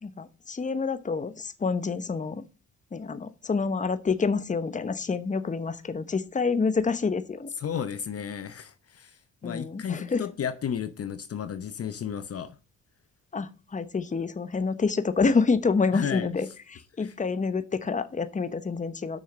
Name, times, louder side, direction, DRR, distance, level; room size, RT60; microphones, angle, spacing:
voice 1, 0.0-2.4 2.9-7.5 9.4-10.2 13.3-19.2, left 4 dB, 25° left, 1.0 m, -28 dB
voice 2, 7.6-12.6 15.9-16.3 17.0-17.1, left 8 dB, 50° left, 0.8 m, -33 dB
6.4 x 6.4 x 7.2 m
cardioid pair, 105°, 32 cm